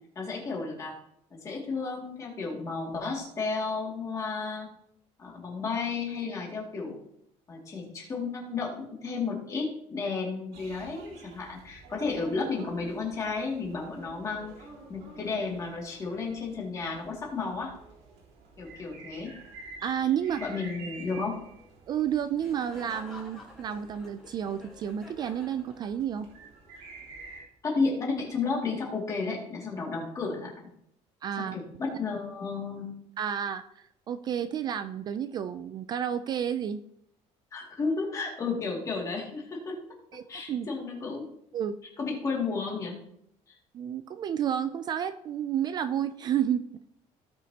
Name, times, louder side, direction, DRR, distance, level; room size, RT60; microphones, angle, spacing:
voice 1, 0.2-0.9 1.3-4.7 5.2-7.0 7.5-14.5 14.9-17.7 18.6-19.3 20.4-21.3 27.6-30.5 31.4-32.9 37.5-39.8 40.3-41.2 42.0-43.0, left 4 dB, 25° left, -2 dB, 2.4 m, -32 dB
sound 1, 10.5-27.4, right 3 dB, 80° right, 3.4 m, -50 dB
voice 2, 19.8-20.4 21.9-26.3 31.2-31.6 33.2-36.8 40.1-40.2 40.5-40.7 41.5-41.7 43.7-46.6, right 9 dB, 35° right, 11 dB, 0.3 m, -31 dB
Laughter, 22.4-26.3, left 2 dB, ahead, 2.3 m, -49 dB
17.0 x 6.1 x 2.9 m, 0.73 s
cardioid pair, 180°, 13 cm